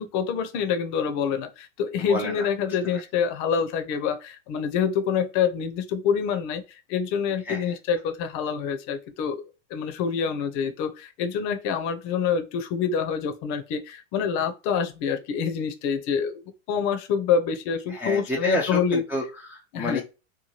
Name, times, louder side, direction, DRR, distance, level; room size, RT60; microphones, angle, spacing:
voice 1, 0.0-16.4 16.7-19.0 19.7-20.0, left 7 dB, 45° left, 0.6 m, -26 dB
voice 2, 2.1-2.5 7.5-7.6 17.9-20.0, equal, 5° right, 0.3 m, -29 dB
2.8 x 2.2 x 3.0 m
hypercardioid pair, 110°, 40 cm